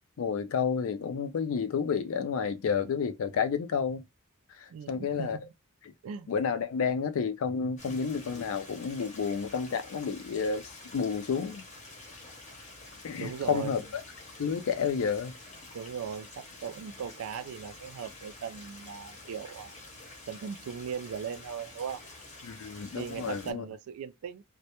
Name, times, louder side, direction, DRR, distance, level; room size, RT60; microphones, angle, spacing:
voice 1, 0.2-4.1 4.6-5.4 6.3-11.6 13.0-14.0 14.4-15.4 22.4-23.6, left 6 dB, 65° left, 0.4 m, -30 dB
voice 2, 4.7-5.5 6.0-6.3 13.2-13.8 15.7-19.7 20.3-22.0 23.0-24.4, right 7 dB, 75° right, 0.3 m, -38 dB
Stream, 7.8-23.5, left 2 dB, 30° left, 0.6 m, -48 dB
2.1 x 2.1 x 2.8 m
head